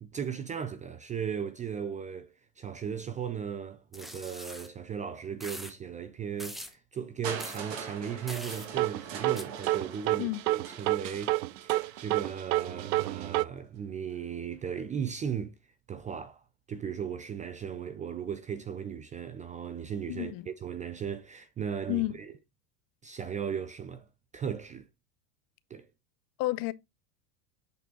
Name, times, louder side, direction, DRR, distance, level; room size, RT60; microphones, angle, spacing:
voice 1, 0.0-2.3 2.6-15.5 15.9-16.4 16.7-22.3 23.0-24.0 24.3-24.9 25.7-25.9, right 7 dB, 15° right, 0.4 m, -37 dB
sound 1, 3.9-4.7 5.4-5.7 6.4-6.7 7.4-7.6 8.3-8.7 9.4-9.5, equal, ahead, 0.9 m, -42 dB
Crushing, 7.2-13.1 14.1-14.2, right 7 dB, 55° right, 2.4 m, -43 dB
sound 2, 8.5-13.4, right 18 dB, 80° right, 0.6 m, -29 dB
voice 2, 20.1-20.5 21.9-22.2 26.4-26.7, left 19 dB, 45° left, 0.6 m, -31 dB
8.3 x 4.4 x 3.8 m
supercardioid pair, 110°, 49 cm